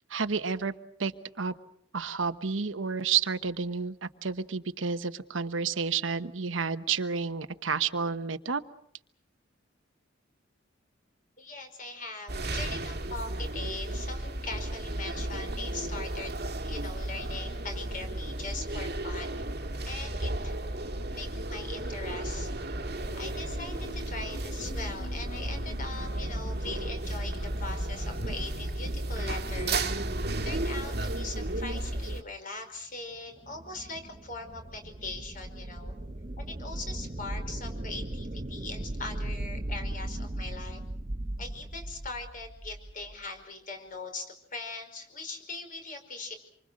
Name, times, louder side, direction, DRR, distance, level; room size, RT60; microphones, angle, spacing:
voice 1, 0.1-0.7 1.0-1.1 1.4-1.5 1.9-8.6, right 5 dB, 85° right, 11 dB, 1.1 m, -30 dB
voice 2, 11.4-16.3 16.6-19.4 19.8-20.6 21.1-22.5 23.1-29.9 30.4-35.9 36.4-40.8 41.4-46.3, left 3 dB, 45° left, 6 dB, 5.1 m, -41 dB
sound 1, 12.3-32.2, right 1 dB, 55° right, 1.7 m, -34 dB
sound 2, 18.7-30.5, equal, 90° left, 4.9 m, -46 dB
sound 3, 33.1-43.2, right 1 dB, 35° right, 0.9 m, -38 dB
27.0 x 24.5 x 6.4 m, 0.65 s
head